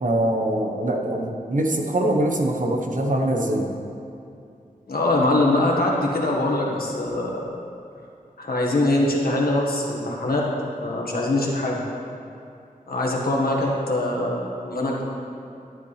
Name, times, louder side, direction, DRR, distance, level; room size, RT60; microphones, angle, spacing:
voice 1, 0.0-3.7, right 1 dB, 60° right, 2 dB, 1.1 m, -23 dB
voice 2, 4.9-7.4 8.4-10.5 10.8-11.8 12.9-15.0, left 2 dB, 80° left, -3 dB, 1.5 m, -23 dB
12.0 x 10.0 x 3.3 m, 2.5 s
wide cardioid pair, 80°, 15 cm